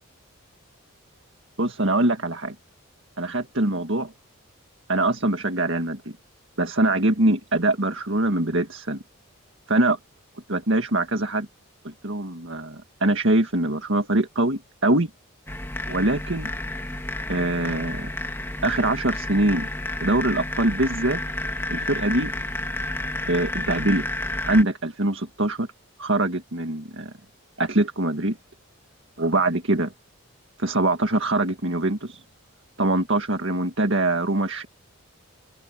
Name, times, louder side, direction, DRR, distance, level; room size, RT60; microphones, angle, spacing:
voice 1, 1.6-2.6 3.2-4.1 4.9-6.2 6.6-9.0 9.7-10.0 10.5-11.5 11.8-15.1 15.9-16.5 17.3-18.1 18.6-19.7 20.0-21.2 21.7-22.3 23.3-24.1 24.4-25.7 26.0-27.1 27.6-28.4 29.2-29.9 30.6-32.2 32.8-34.7, right 2 dB, 60° right, 1.9 m, -23 dB
sound 1, 15.5-24.6, left 1 dB, 10° left, 1.7 m, -31 dB
open air
head